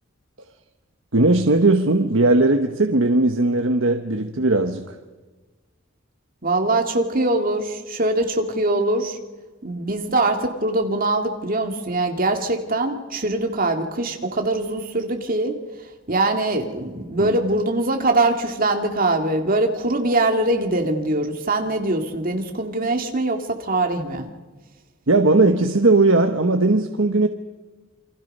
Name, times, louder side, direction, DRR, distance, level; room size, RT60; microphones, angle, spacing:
voice 1, 1.1-4.9 17.2-17.3 25.1-27.3, right 2 dB, 65° right, 6 dB, 1.2 m, -18 dB
voice 2, 6.4-9.2 9.6-15.6 16.1-24.3, right 2 dB, 45° right, 4 dB, 2.3 m, -22 dB
28.5 x 24.0 x 5.5 m, 1.3 s
head